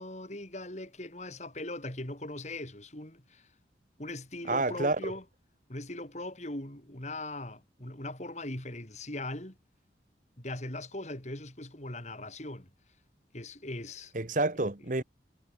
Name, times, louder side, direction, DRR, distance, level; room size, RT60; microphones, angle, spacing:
voice 1, 0.0-3.5 4.0-5.2 5.7-9.6 10.4-12.7 13.3-14.1, left 2 dB, 40° left, 3.8 m, -40 dB
voice 2, 4.5-5.1 14.1-15.0, right 2 dB, 45° right, 1.4 m, -29 dB
head